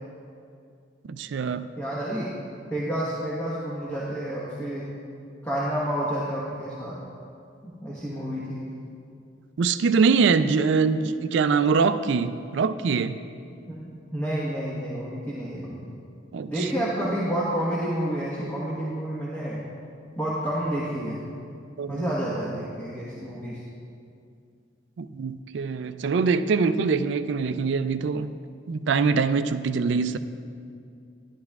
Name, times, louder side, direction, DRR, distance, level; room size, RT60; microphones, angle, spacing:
voice 1, 1.1-1.7 9.6-13.2 16.3-16.7 21.8-22.1 25.0-28.3 28.7-30.2, right 5 dB, 70° right, 11 dB, 0.3 m, -23 dB
voice 2, 1.8-2.3 2.7-4.9 5.4-7.0 7.6-8.6 13.7-16.0 16.5-19.6 20.2-21.2 21.9-23.6, right 1 dB, 10° left, -8 dB, 1.2 m, -29 dB
11.5 x 11.0 x 2.3 m, 2.4 s
head